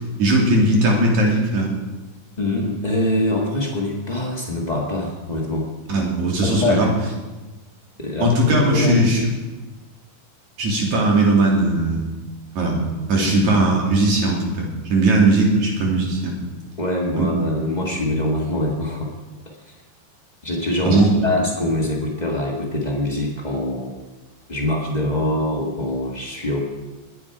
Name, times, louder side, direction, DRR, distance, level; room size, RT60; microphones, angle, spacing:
voice 1, 0.2-1.7 5.9-6.9 8.2-9.2 10.6-12.0 12.6-12.8 13.1-16.3 17.2-17.3 20.8-21.1, right 2 dB, 55° right, -1 dB, 4.0 m, -18 dB
voice 2, 2.4-5.7 6.4-6.8 8.0-9.3 13.2-13.5 16.8-19.1 20.4-24.0 24.5-26.6, left 1 dB, 90° left, -2 dB, 0.4 m, -24 dB
21.0 x 9.4 x 4.8 m, 1.2 s
omnidirectional pair, 4.0 m